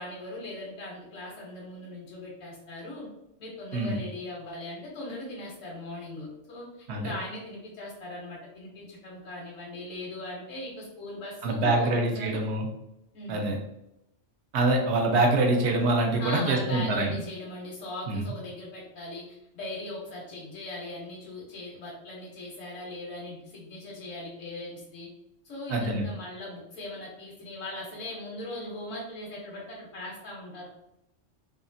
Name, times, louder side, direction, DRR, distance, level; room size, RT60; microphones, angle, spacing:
voice 1, 0.0-3.1 3.4-11.9 12.1-12.4 13.1-13.4 16.2-25.1 25.4-30.7, left 2 dB, 80° left, -3 dB, 1.1 m, -39 dB
voice 2, 11.4-12.7 13.3-13.6 14.5-17.2 18.1-18.2 25.7-26.0, right 2 dB, 70° right, 2 dB, 0.8 m, -25 dB
2.8 x 2.4 x 2.5 m, 0.85 s
omnidirectional pair, 1.3 m